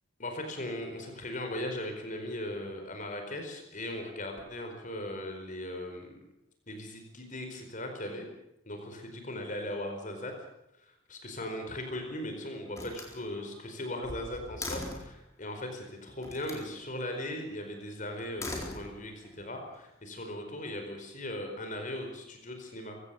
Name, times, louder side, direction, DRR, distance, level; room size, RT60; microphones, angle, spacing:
voice 1, 0.2-6.1 6.7-8.3 8.6-10.3 10.8-23.0, left 1 dB, 40° left, 4 dB, 4.7 m, -38 dB
Slam, 11.6-12.2 12.7-15.2 16.2-16.7 18.2-19.3, left 2 dB, 15° left, 4.3 m, -41 dB
23.0 x 16.5 x 7.8 m, 0.84 s
head